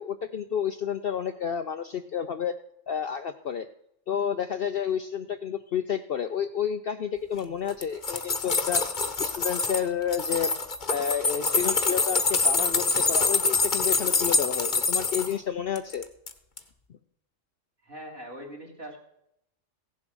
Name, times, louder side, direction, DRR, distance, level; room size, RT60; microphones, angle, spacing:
voice 1, 0.0-2.6 2.9-3.7 4.1-8.9 9.2-10.5 10.9-16.1, left 8 dB, 55° left, 9 dB, 0.7 m, -30 dB
sound 1, 7.7-9.8 10.1-15.3 15.8-16.3 16.6-16.7, left 4 dB, 40° left, 1.2 m, -25 dB
voice 2, 17.8-19.0, equal, 45° right, 0 dB, 2.9 m, -41 dB
16.0 x 7.4 x 6.2 m, 0.76 s
omnidirectional pair, 1.4 m